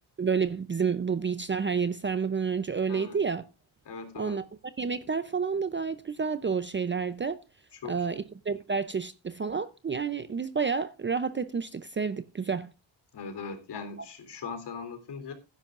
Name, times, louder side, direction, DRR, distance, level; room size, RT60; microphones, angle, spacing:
voice 1, 0.2-3.4 4.2-4.4 4.8-7.4 7.8-12.7, right 5 dB, 25° right, 0.6 m, -29 dB
voice 2, 3.9-4.4 7.7-8.2 13.1-15.3, left 5 dB, 55° left, 3.5 m, -40 dB
16.0 x 10.5 x 2.5 m
cardioid pair, 150°, 49 cm